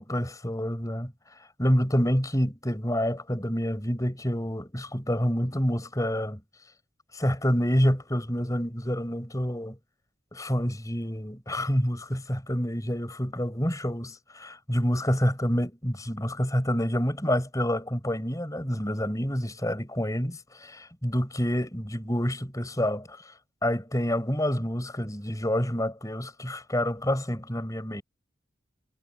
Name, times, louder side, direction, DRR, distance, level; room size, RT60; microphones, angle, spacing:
voice 1, 0.0-6.4 7.1-9.8 10.3-23.3 23.6-28.0, equal, 20° left, 5.8 m, -28 dB
head